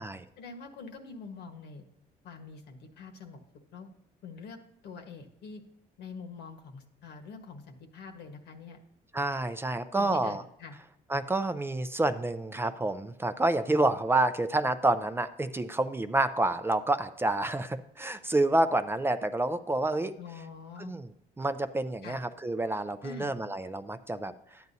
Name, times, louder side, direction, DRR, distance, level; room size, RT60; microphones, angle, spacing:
voice 1, 0.4-1.9 2.2-3.4 3.7-3.9 4.2-5.6 6.0-8.8 9.9-10.8 20.2-20.9 22.0-22.2 23.0-23.3, left 5 dB, 80° left, 5 dB, 1.3 m, -45 dB
voice 2, 9.1-10.4 11.1-20.1 20.8-21.1 21.4-24.3, right 2 dB, 15° right, 10 dB, 0.4 m, -28 dB
12.0 x 9.3 x 2.7 m, 0.76 s
cardioid pair, 110°, 17 cm